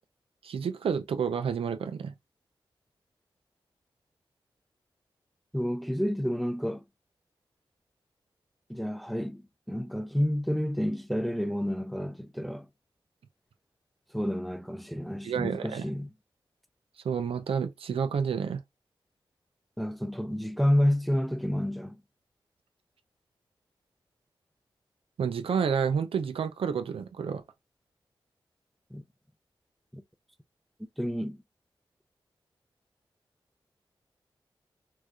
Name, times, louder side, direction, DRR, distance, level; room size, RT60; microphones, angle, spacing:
voice 1, 0.4-2.1 15.2-15.8 17.0-18.6 25.2-27.4, right 6 dB, 80° right, 0.4 m, -29 dB
voice 2, 5.5-6.8 8.7-12.7 14.1-16.1 19.8-22.0 28.9-29.0 29.9-30.0 31.0-31.4, equal, ahead, 0.4 m, -29 dB
4.5 x 2.3 x 2.3 m
cardioid pair, 45°, 9 cm